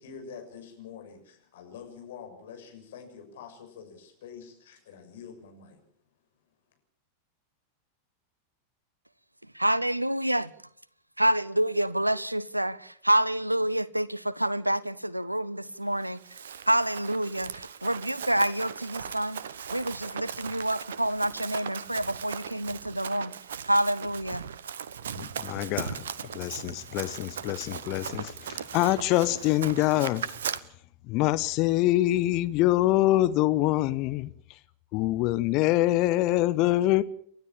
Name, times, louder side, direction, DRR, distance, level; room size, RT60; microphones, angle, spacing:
voice 1, 0.0-5.8, left 6 dB, 60° left, 6.6 m, -46 dB
voice 2, 9.5-10.5 11.2-16.2 16.7-19.4 19.7-23.3 23.6-24.4, right 1 dB, 85° right, 0.9 m, -27 dB
Run, 16.0-30.6, right 8 dB, 65° right, 1.0 m, -38 dB
voice 3, 25.2-30.3 31.0-34.6 34.9-37.0, left 16 dB, 40° left, 1.1 m, -25 dB
30.0 x 13.0 x 7.3 m
figure-of-eight pair, 90°, 0 cm